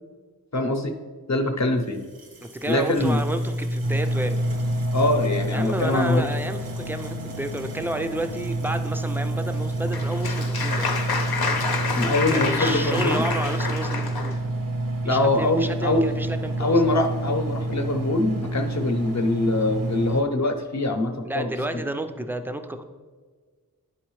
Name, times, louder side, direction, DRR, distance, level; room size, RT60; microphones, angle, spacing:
voice 1, 0.5-1.0 1.3-2.0 2.7-3.2 4.9-6.3 11.9-13.2 15.1-16.1 16.6-21.5, left 2 dB, 50° left, 5 dB, 0.8 m, -23 dB
sound 1, 1.8-13.9, equal, 85° right, 1.3 m, -30 dB
voice 2, 2.4-4.4 5.5-11.0 12.3-14.4 15.0-16.8 21.2-22.8, right 1 dB, 5° right, 8 dB, 0.4 m, -31 dB
Engine, 3.8-20.2, right 2 dB, 65° right, 0.8 m, -28 dB
Applause, 9.5-14.4, left 4 dB, 80° left, 0.8 m, -28 dB
10.5 x 4.0 x 3.1 m, 1.5 s
wide cardioid pair, 75°, 36 cm